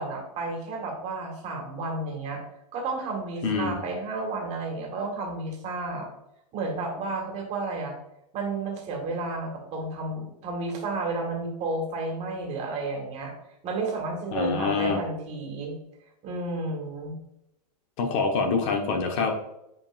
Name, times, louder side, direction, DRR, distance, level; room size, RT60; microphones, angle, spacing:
voice 1, 0.0-2.4 2.7-6.1 6.5-7.9 8.3-13.3 13.6-15.8 16.2-17.2, right 3 dB, 30° right, 1 dB, 1.8 m, -32 dB
voice 2, 3.4-3.8 14.3-15.0 18.0-19.3, left 4 dB, 50° left, 4 dB, 1.3 m, -25 dB
8.2 x 5.0 x 2.6 m, 0.83 s
hypercardioid pair, 135°, 21 cm